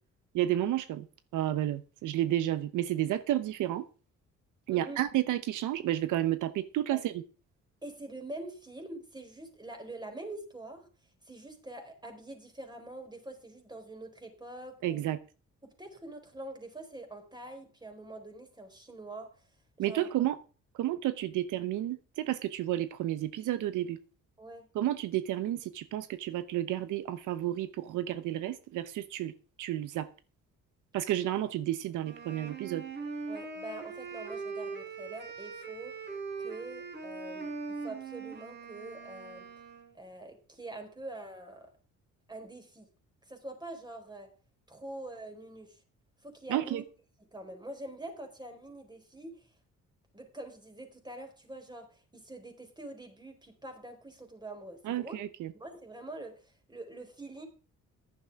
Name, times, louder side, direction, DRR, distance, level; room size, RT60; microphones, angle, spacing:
voice 1, 0.3-1.1 1.3-3.9 4.7-7.2 14.8-15.2 19.8-20.4 20.7-24.0 24.7-29.3 29.6-30.1 30.9-32.9 46.5-46.8 54.8-55.5, right 13 dB, 85° right, 0.9 m, -31 dB
voice 2, 7.8-10.9 11.2-15.0 15.6-19.5 19.8-20.1 24.4-24.7 33.3-36.0 36.4-39.5 39.9-41.7 42.3-42.9 43.2-44.3 44.7-45.8 46.2-46.8 47.3-49.5 50.1-55.1 55.5-57.4, right 2 dB, 15° right, 4.4 m, -45 dB
Wind instrument woodwind instrument, 32.0-40.0, right 4 dB, 35° right, 4.2 m, -41 dB
14.0 x 11.0 x 3.7 m
cardioid pair, 90°, 30 cm